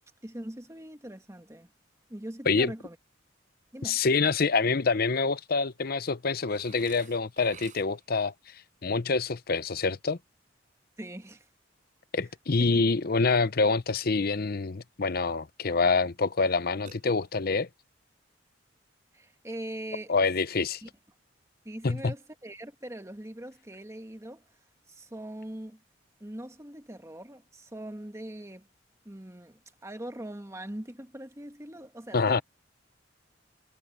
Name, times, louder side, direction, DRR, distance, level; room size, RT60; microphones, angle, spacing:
voice 1, 0.2-1.7 2.1-3.0 3.7-4.0 11.0-11.5 12.7-12.9 19.1-20.1 20.8-20.9 21.6-24.4 24.9-25.8 26.2-28.7 29.0-32.4, right 1 dB, 15° right, 1.5 m, -41 dB
voice 2, 3.8-8.3 8.8-10.2 12.1-17.7 20.1-20.8 21.8-22.1 32.1-32.4, left 4 dB, 50° left, 0.7 m, -26 dB
Burping eructation, 6.5-8.2 16.9-17.6, right 6 dB, 40° right, 5.7 m, -52 dB
head